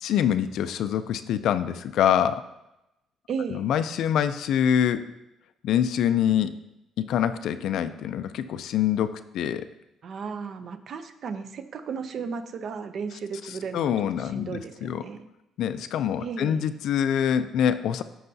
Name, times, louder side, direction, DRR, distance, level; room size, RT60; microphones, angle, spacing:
voice 1, 0.0-2.4 3.5-5.1 5.6-6.5 7.0-9.7 13.7-15.0 15.6-18.0, left 9 dB, 60° left, 12 dB, 0.4 m, -25 dB
voice 2, 3.3-3.7 10.0-13.9 14.2-15.2 16.2-16.7, right 5 dB, 40° right, 10 dB, 0.5 m, -35 dB
13.5 x 5.5 x 2.7 m, 0.91 s
cardioid pair, 175°, 0 cm